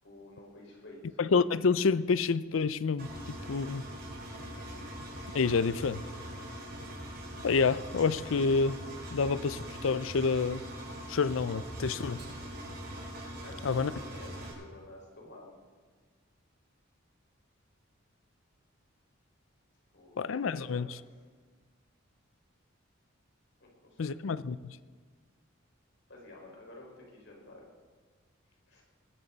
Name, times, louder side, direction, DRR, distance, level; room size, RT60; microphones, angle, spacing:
voice 1, 0.0-1.2 13.4-15.6 19.9-20.8 23.6-24.1 26.1-27.7 28.7-28.8, left 2 dB, 65° left, -1 dB, 5.1 m, -51 dB
voice 2, 1.2-3.8 5.3-6.0 7.4-8.8 9.1-10.6 11.1-12.2 13.6-13.9 20.2-20.9 24.0-24.8, left 4 dB, 80° left, 16 dB, 0.5 m, -28 dB
Engine, 3.0-14.5, equal, 55° right, 4.7 m, -42 dB
20.5 x 14.0 x 4.1 m, 1.5 s
head